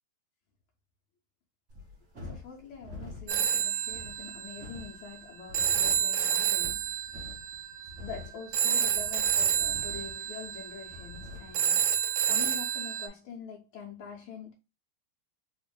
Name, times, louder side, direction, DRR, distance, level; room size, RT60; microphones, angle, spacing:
sound 1, 1.7-11.6, left 2 dB, 35° right, 1.7 m, -47 dB
voice 1, 2.2-7.0 8.0-11.9 12.3-14.5, left 6 dB, 85° left, 1.7 m, -44 dB
Telephone, 3.3-13.1, right 9 dB, 80° right, 1.5 m, -29 dB
4.3 x 3.1 x 2.2 m
omnidirectional pair, 2.3 m